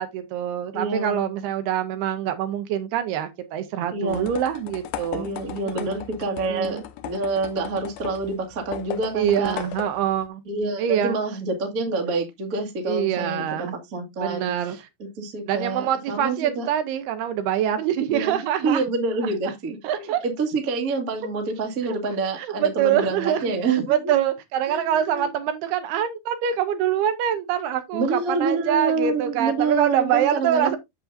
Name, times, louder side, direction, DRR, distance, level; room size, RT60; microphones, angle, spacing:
voice 1, 0.0-5.3 5.7-6.0 6.5-6.8 9.2-10.4 10.8-11.2 12.9-13.8 14.2-14.8 15.5-18.8 19.2-19.4 19.8-20.2 22.4-30.8, right 10 dB, 75° right, 2.8 m, -25 dB
voice 2, 0.7-1.2 3.9-4.3 5.1-9.6 10.4-16.7 18.1-18.4 18.6-24.0 24.7-25.3 27.9-30.8, right 3 dB, 40° right, 1.2 m, -27 dB
sound 1, 4.1-10.3, left 12 dB, 75° left, 2.3 m, -37 dB
8.1 x 7.2 x 2.6 m
omnidirectional pair, 4.8 m